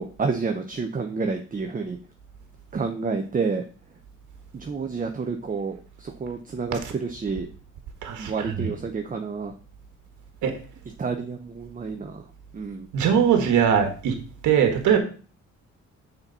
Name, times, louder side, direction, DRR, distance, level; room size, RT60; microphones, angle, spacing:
voice 1, 0.0-2.0 2.7-3.6 4.5-7.5 8.2-9.5 11.0-12.3 12.5-12.9, right 4 dB, 25° right, 5 dB, 0.8 m, -29 dB
voice 2, 8.0-8.7 10.4-10.5 12.9-14.1 14.4-15.0, right 8 dB, 75° right, 6 dB, 1.5 m, -21 dB
6.6 x 4.5 x 5.4 m, 0.38 s
cardioid pair, 90°, 30 cm